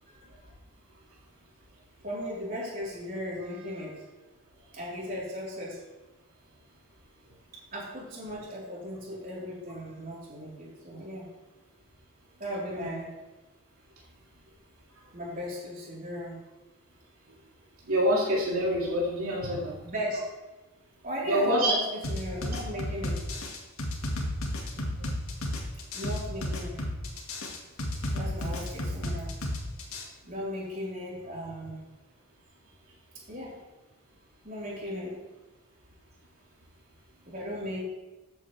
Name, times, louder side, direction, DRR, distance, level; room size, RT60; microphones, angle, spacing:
voice 1, 2.0-4.0 4.7-5.8 7.7-11.3 12.4-13.1 15.1-16.4 19.8-20.2 21.0-23.3 25.9-26.8 27.9-29.3 30.3-31.8 33.3-33.6 34.4-35.2 37.3-37.8, equal, 40° right, -6 dB, 4.1 m, -36 dB
voice 2, 17.9-19.8 21.2-21.7 24.7-25.1, equal, 80° right, -4 dB, 2.3 m, -26 dB
sound 1, 22.0-30.0, left 1 dB, 75° left, 2.0 m, -32 dB
14.0 x 8.5 x 3.4 m, 1.1 s
head